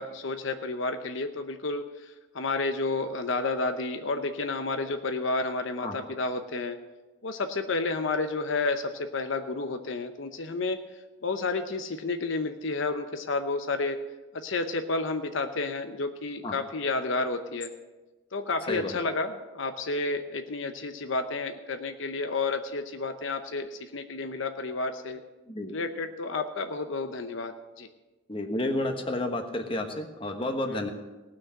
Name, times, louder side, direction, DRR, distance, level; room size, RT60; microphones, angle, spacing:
voice 1, 0.0-6.8 7.2-10.8 11.2-14.0 14.3-17.7 18.3-25.2 25.7-27.9, left 3 dB, 70° left, 7 dB, 0.8 m, -31 dB
voice 2, 18.7-19.0 25.5-25.7 28.3-30.9, left 1 dB, 25° left, 4 dB, 1.2 m, -31 dB
18.5 x 6.3 x 7.6 m, 1.2 s
head